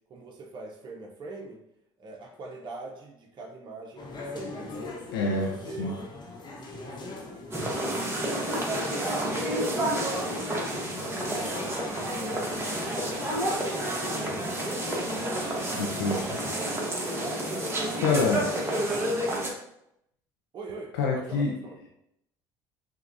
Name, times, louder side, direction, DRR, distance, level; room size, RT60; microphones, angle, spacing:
voice 1, 0.1-1.6 2.0-4.9 5.3-6.0 6.5-7.8 8.3-11.8 12.1-14.6 15.2-17.0 17.4-19.4 20.5-21.8, right 3 dB, 45° right, 0 dB, 0.8 m, -44 dB
sound 1, 4.0-16.4, left 3 dB, 40° left, 1.0 m, -41 dB
voice 2, 5.1-5.9 15.8-16.2 18.0-18.4 21.0-21.5, left 4 dB, 85° left, -1 dB, 0.6 m, -26 dB
sound 2, 7.5-19.5, right 1 dB, 20° right, 1.2 m, -30 dB
6.0 x 2.3 x 2.6 m, 0.79 s
hypercardioid pair, 70°, 11 cm